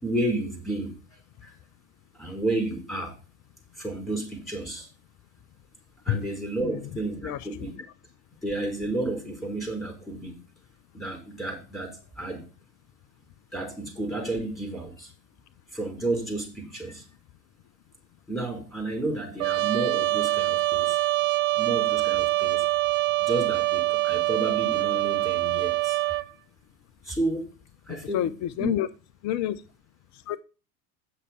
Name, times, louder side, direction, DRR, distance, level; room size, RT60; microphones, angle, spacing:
voice 1, 0.0-0.9 1.4-1.5 2.1-3.1 3.8-4.9 6.1-7.7 8.4-10.4 10.9-12.5 13.5-15.1 15.7-17.0 18.3-21.0 21.6-22.6 23.2-26.0 27.0-27.5 27.9-28.3 28.6-28.7, right 2 dB, ahead, 1 dB, 5.3 m, -31 dB
voice 2, 6.6-6.9 7.2-7.9 27.9-28.9 29.2-29.6 30.1-30.4, left 12 dB, 40° left, 15 dB, 0.8 m, -29 dB
Trumpet, 19.4-26.3, right 18 dB, 65° right, 0.7 m, -25 dB
9.2 x 6.6 x 4.8 m, 0.33 s
figure-of-eight pair, 75°, 43 cm